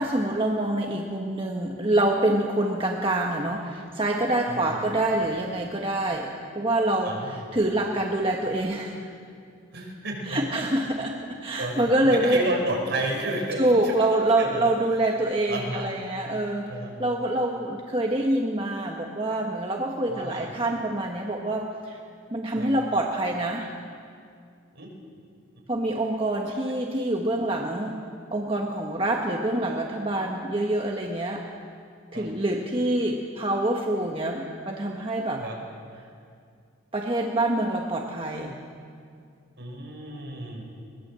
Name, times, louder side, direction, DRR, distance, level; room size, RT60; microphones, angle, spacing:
voice 1, 0.0-9.0 10.3-12.5 13.6-16.7 17.0-22.0 22.3-23.7 25.7-28.0 28.3-31.4 32.1-35.4 36.9-38.6, right 1 dB, 25° right, 0 dB, 1.4 m, -26 dB
voice 2, 4.5-4.8 7.0-7.3 9.7-10.4 10.7-10.9 11.5-14.6 15.5-15.9 16.7-16.9 20.1-20.5 22.5-22.7 24.7-24.9 32.1-32.3 35.4-35.6 39.6-40.6, right 1 dB, 55° right, 0 dB, 5.8 m, -32 dB
22.0 x 20.5 x 7.7 m, 2.3 s
head